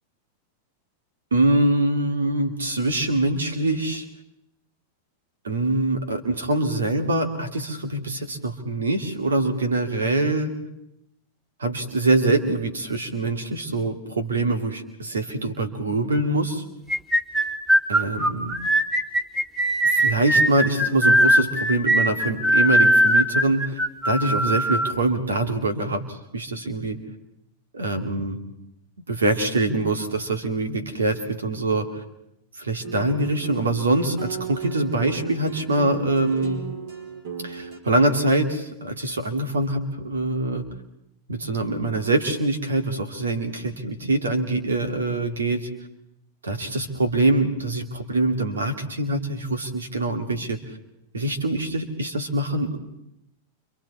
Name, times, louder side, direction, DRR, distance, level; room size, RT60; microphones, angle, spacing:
voice 1, 1.3-4.0 5.4-10.5 11.6-16.6 17.9-18.5 19.8-23.8 24.0-27.0 27.7-28.4 29.1-32.0 32.6-36.6 37.4-40.6 41.3-45.7 46.4-50.6 51.1-52.8, right 2 dB, 85° right, 6 dB, 2.7 m, -24 dB
sound 1, 16.9-24.9, equal, 10° right, 2.7 m, -20 dB
sound 2, 32.8-37.8, right 5 dB, 60° right, 5.0 m, -35 dB
29.0 x 26.0 x 4.4 m, 0.82 s
hypercardioid pair, 100°, 0 cm